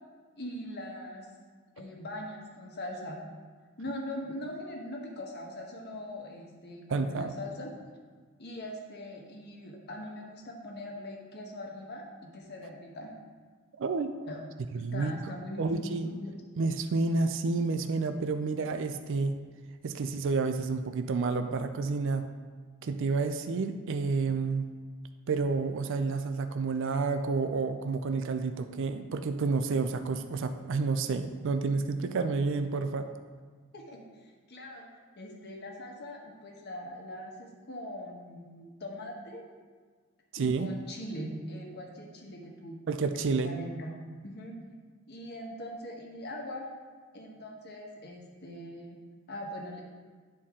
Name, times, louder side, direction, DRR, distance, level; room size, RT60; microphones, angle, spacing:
voice 1, 0.4-1.3 1.8-3.2 3.8-7.7 8.4-12.0 12.3-13.1 14.3-14.4 14.7-16.3 33.7-34.0 34.5-34.9 35.2-39.4 40.4-42.8 43.4-43.9 44.2-44.6 45.1-46.7 47.1-49.0 49.3-49.8, left 1 dB, 50° left, 0 dB, 1.2 m, -41 dB
voice 2, 6.9-7.3 13.8-14.1 14.7-15.1 15.6-16.1 16.6-19.4 19.8-22.3 22.8-24.7 25.3-33.1 40.3-40.7 42.9-43.5, right 4 dB, 60° right, 8 dB, 0.4 m, -30 dB
10.5 x 4.4 x 3.7 m, 1.5 s
head